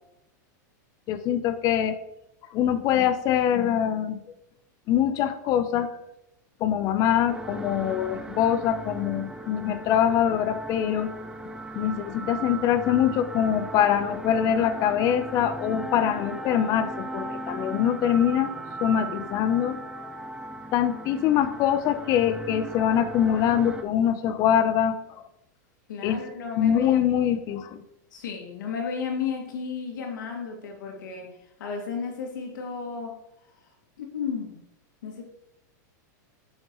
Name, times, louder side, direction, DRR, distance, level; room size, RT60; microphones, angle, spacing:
voice 1, 1.1-2.0 2.5-4.2 4.9-6.0 6.6-11.1 11.7-18.5 18.8-19.8 20.7-25.2 26.0-26.2 26.6-27.8, left 10 dB, 35° left, 11 dB, 0.6 m, -24 dB
sound 1, 7.3-23.8, right 2 dB, 5° right, 0.5 m, -37 dB
voice 2, 25.9-27.6 28.1-31.3 31.6-33.2 34.0-34.6 35.0-35.2, left 6 dB, 80° left, 1 dB, 2.1 m, -33 dB
7.2 x 6.4 x 3.1 m, 0.81 s
supercardioid pair, 140°, 10 cm